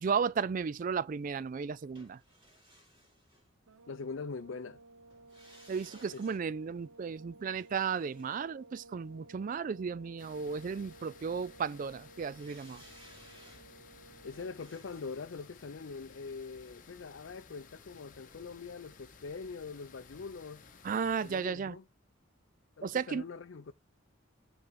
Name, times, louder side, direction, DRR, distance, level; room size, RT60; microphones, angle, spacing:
voice 1, 0.0-2.2 5.7-12.8 20.8-21.8 22.8-23.2, right 6 dB, 40° right, 0.3 m, -34 dB
sound 1, 2.0-4.1 5.1-9.4 12.4-17.4 17.7-17.8, equal, 25° right, 4.0 m, -61 dB
sound 2, 3.7-14.7, right 2 dB, 85° right, 0.8 m, -57 dB
voice 2, 3.9-4.8 6.1-6.2 14.2-20.6 21.2-21.8 22.8-23.7, left 4 dB, 70° left, 0.5 m, -43 dB
sound 3, 10.2-21.4, left 5 dB, 45° left, 1.0 m, -57 dB
6.7 x 4.3 x 5.0 m
head